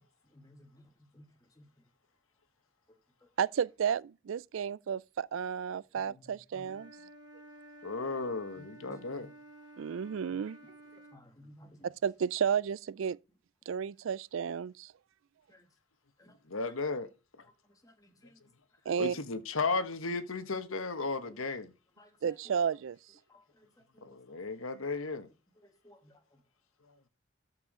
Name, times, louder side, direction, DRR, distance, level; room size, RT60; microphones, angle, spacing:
voice 1, 0.3-0.7 1.1-1.2 6.5-6.7 8.9-9.3 11.1-11.8 15.5-15.6 16.2-16.3 17.8-18.3 22.0-22.1 24.0-24.1 25.8-26.1, left 1 dB, 15° left, 1.6 m, -55 dB
voice 2, 3.4-6.9 9.8-10.6 11.8-13.2 13.7-14.9 18.9-19.1 22.2-23.0, right 7 dB, 70° right, 0.4 m, -32 dB
Wind instrument woodwind instrument, 6.6-11.2, right 2 dB, 20° right, 5.0 m, -53 dB
voice 3, 7.8-9.3 16.5-17.1 19.0-21.7 24.0-25.3, left 3 dB, 85° left, 1.3 m, -34 dB
13.5 x 4.7 x 4.9 m
head